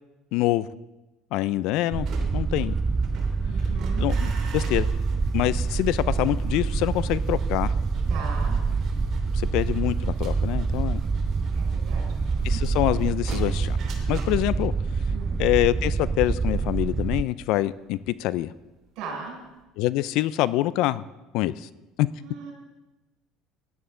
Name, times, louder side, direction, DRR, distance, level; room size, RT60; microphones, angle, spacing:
voice 1, 0.3-0.7 1.3-2.1 2.3-2.8 4.0-4.9 5.3-7.7 9.3-11.0 12.4-13.8 14.1-14.7 15.4-18.5 19.8-21.0 21.3-21.7 22.0-22.1, left 16 dB, 65° left, 18 dB, 0.4 m, -25 dB
sound 1, 1.9-17.2, right 4 dB, 20° right, 0.4 m, -26 dB
sound 2, 1.9-18.9 19.2-19.6, right 3 dB, 45° right, 3.0 m, -46 dB
voice 2, 3.5-4.0 8.1-8.6 9.2-9.3 11.5-12.6 15.1-15.4 19.0-19.4 22.2-22.5, right 5 dB, 65° right, 0 dB, 5.3 m, -38 dB
16.5 x 11.0 x 3.8 m, 1.1 s
cardioid pair, 130°, 0 cm